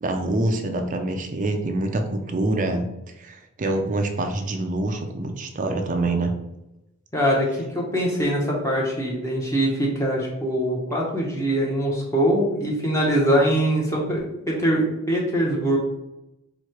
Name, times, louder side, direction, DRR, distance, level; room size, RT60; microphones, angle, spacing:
voice 1, 0.0-2.9 3.2-6.3, right 2 dB, 35° right, 5 dB, 0.4 m, -25 dB
voice 2, 7.1-15.8, right 1 dB, 15° left, -3 dB, 0.8 m, -23 dB
3.0 x 2.8 x 4.4 m, 0.91 s
head